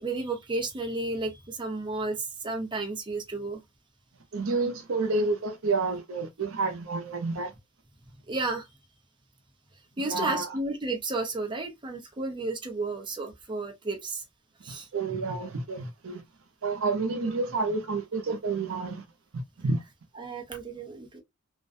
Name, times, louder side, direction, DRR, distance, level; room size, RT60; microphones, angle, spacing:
voice 1, 0.0-3.6 8.3-8.7 10.0-14.2 14.6-14.9 20.1-21.2, right 3 dB, 25° right, 0.6 m, -32 dB
voice 2, 4.3-7.5 10.1-10.5 14.7-16.2 16.6-19.0 19.6-19.8, right 3 dB, 80° right, 0.6 m, -29 dB
2.4 x 2.2 x 2.5 m
head